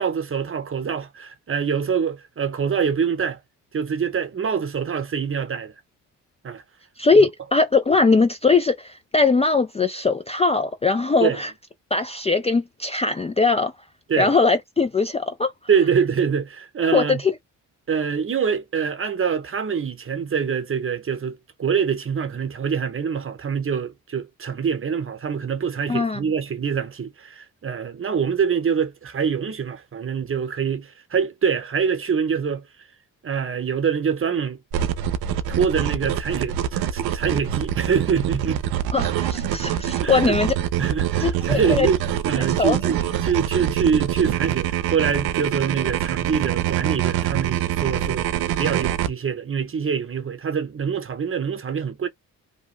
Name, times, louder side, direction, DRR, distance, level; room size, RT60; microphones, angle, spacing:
voice 1, 0.0-3.4 3.7-5.7 6.4-6.6 7.1-7.3 11.2-11.4 14.1-14.3 15.7-17.2 17.9-32.7 33.2-34.6 35.5-38.6 40.0-40.4 40.8-48.3 48.6-52.1, right 6 dB, 35° right, 0.8 m, -25 dB
voice 2, 7.0-11.5 11.9-13.7 14.2-15.5 16.9-17.3 25.9-26.2 38.9-40.5 41.2-41.9 42.6-42.8, left 4 dB, 20° left, 0.4 m, -20 dB
sound 1, 34.7-49.1, right 11 dB, 80° right, 0.5 m, -25 dB
2.8 x 2.1 x 3.1 m
supercardioid pair, 60°, 37 cm